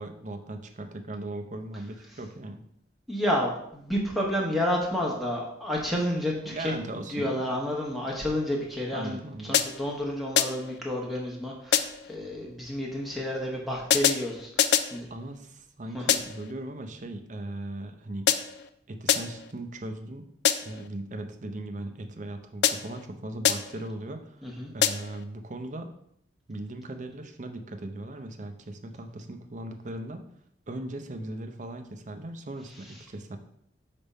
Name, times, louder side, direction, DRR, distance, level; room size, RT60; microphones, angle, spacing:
voice 1, 0.0-2.6 6.4-7.5 8.9-9.6 15.1-18.3 18.9-20.3 20.6-25.9 26.5-30.2 30.7-33.4, right 1 dB, 40° right, 6 dB, 0.6 m, -38 dB
voice 2, 3.1-6.7 7.1-15.1 15.9-16.1 24.4-24.7, left 1 dB, ahead, -3 dB, 0.9 m, -30 dB
sound 1, 9.5-10.0 10.4-10.8 11.7-12.1 13.9-15.0 16.1-16.5 18.3-18.7 19.1-19.5 20.4-20.9 22.6-23.1 23.4-23.9 24.8-25.2, left 9 dB, 60° left, 0.3 m, -26 dB
5.0 x 3.5 x 5.4 m, 0.71 s
head